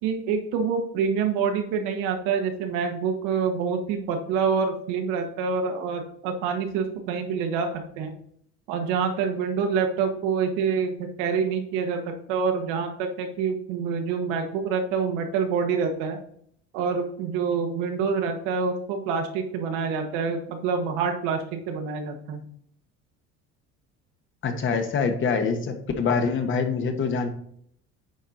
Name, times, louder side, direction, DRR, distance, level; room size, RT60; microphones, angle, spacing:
voice 1, 0.0-8.1 8.7-12.0 12.3-16.2 16.7-22.4, right 5 dB, 90° right, 4 dB, 1.5 m, -26 dB
voice 2, 24.4-27.3, left 5 dB, 40° left, 6 dB, 1.3 m, -25 dB
9.1 x 4.5 x 3.9 m, 0.65 s
cardioid pair, 130°, 30 cm